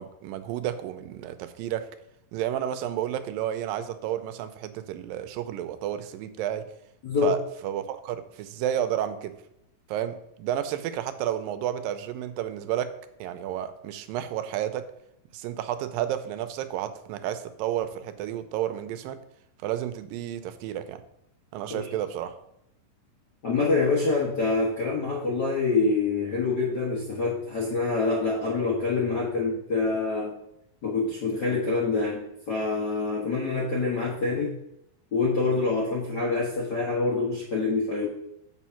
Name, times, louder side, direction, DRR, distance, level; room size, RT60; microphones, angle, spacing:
voice 1, 0.0-1.9 2.3-6.7 7.2-9.3 9.9-12.9 13.2-14.8 15.3-19.2 19.6-21.0 21.5-22.4, right 11 dB, 90° right, 11 dB, 2.4 m, -31 dB
voice 2, 23.4-30.4 30.8-34.5 35.1-38.1, left 3 dB, 70° left, -4 dB, 1.0 m, -26 dB
7.2 x 4.9 x 5.7 m, 0.81 s
omnidirectional pair, 3.9 m